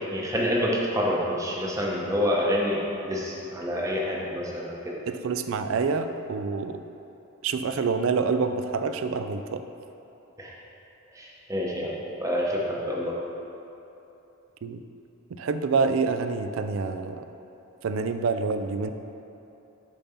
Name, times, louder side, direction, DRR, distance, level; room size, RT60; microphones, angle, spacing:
voice 1, 0.1-5.0 10.4-10.5 11.1-13.1, equal, 15° right, -3 dB, 0.8 m, -27 dB
voice 2, 5.1-6.8 7.4-9.6 14.6-14.8 15.3-17.2 17.8-18.9, right 4 dB, 70° right, 9 dB, 0.4 m, -27 dB
7.1 x 4.0 x 5.7 m, 3.0 s
head